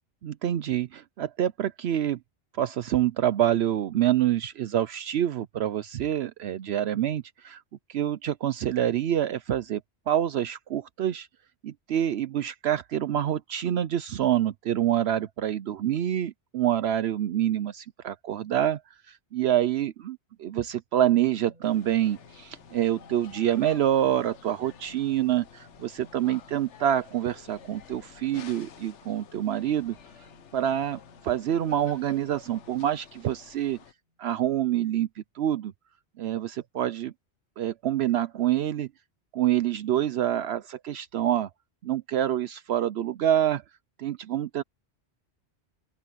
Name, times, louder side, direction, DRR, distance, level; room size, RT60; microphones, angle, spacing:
voice 1, 0.2-2.2 2.6-7.6 7.9-9.8 10.1-11.3 11.6-18.8 19.1-30.0 30.5-31.0 31.2-33.8 34.2-35.7 36.2-37.1 37.6-38.9 39.3-41.5 41.8-43.6 44.0-44.6, right 11 dB, 70° right, 0.8 m, -26 dB
sound 1, 21.4-34.3, equal, 40° right, 7.7 m, -60 dB
sound 2, 21.6-33.9, left 8 dB, 85° left, 1.3 m, -51 dB
open air
omnidirectional pair, 1.2 m